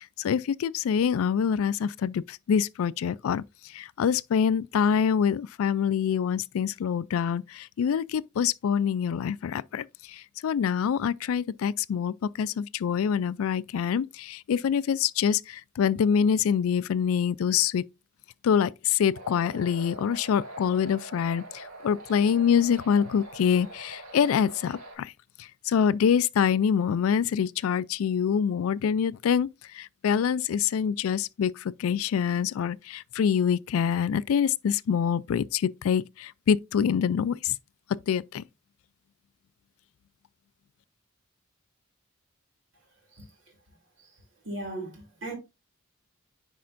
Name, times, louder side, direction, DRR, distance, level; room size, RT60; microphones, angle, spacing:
voice 1, 0.0-17.9 18.4-25.1 25.4-37.6 37.9-38.4, left 7 dB, 80° left, 0.3 m, -25 dB
sound 1, 19.1-25.0, right 2 dB, 85° right, 2.1 m, -44 dB
voice 2, 44.4-45.3, right 2 dB, 60° right, 2.9 m, -36 dB
10.0 x 4.3 x 2.5 m
head